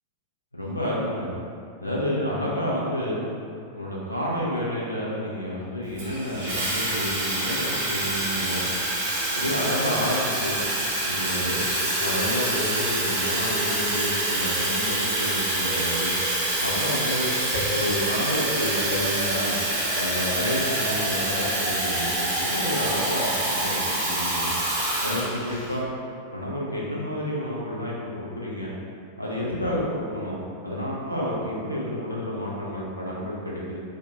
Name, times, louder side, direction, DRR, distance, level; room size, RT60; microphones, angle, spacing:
voice 1, 0.5-1.3 1.8-3.2 3.7-8.7 9.3-10.6 11.0-11.6 12.0-16.1 16.6-17.3 17.7-19.6 20.0-24.5 25.0-25.9 26.3-28.7 29.2-33.8, equal, 85° left, -5 dB, 0.5 m, -30 dB
Water tap faucet / Fill (with liquid), 6.0-25.7, right 1 dB, 60° right, 0.7 m, -26 dB
3.5 x 2.2 x 2.2 m, 2.5 s
figure-of-eight pair, 90°, 0 cm